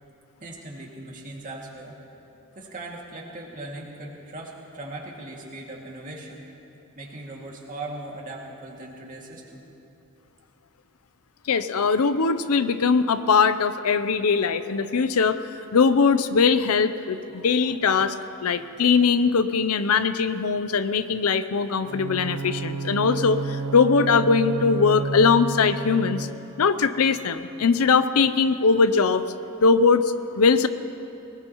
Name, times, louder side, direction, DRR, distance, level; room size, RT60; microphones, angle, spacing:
voice 1, 0.4-1.9 2.6-6.5 7.0-9.7 18.5-18.7, right 2 dB, 35° right, -2 dB, 2.2 m, -39 dB
voice 2, 11.5-15.4 15.7-26.3 26.6-29.2 29.6-30.7, left 5 dB, 75° left, 12 dB, 0.6 m, -21 dB
Bowed string instrument, 21.8-26.7, right 4 dB, 85° right, 0.7 m, -31 dB
22.0 x 19.5 x 3.0 m, 2.9 s
head